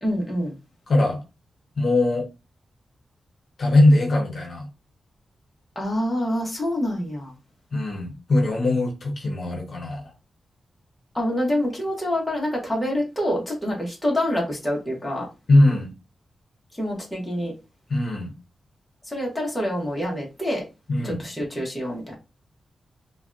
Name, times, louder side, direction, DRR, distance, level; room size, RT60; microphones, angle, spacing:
voice 1, 0.0-0.5 5.8-7.3 11.1-15.3 16.8-17.5 19.1-20.7 21.0-22.1, equal, 5° left, 0.9 m, -26 dB
voice 2, 0.9-1.2 1.8-2.3 3.6-4.7 7.7-10.0 15.5-15.9 17.9-18.3 20.9-21.2, left 2 dB, 50° left, 0.8 m, -20 dB
3.4 x 2.2 x 2.5 m
wide cardioid pair, 175°, 0 cm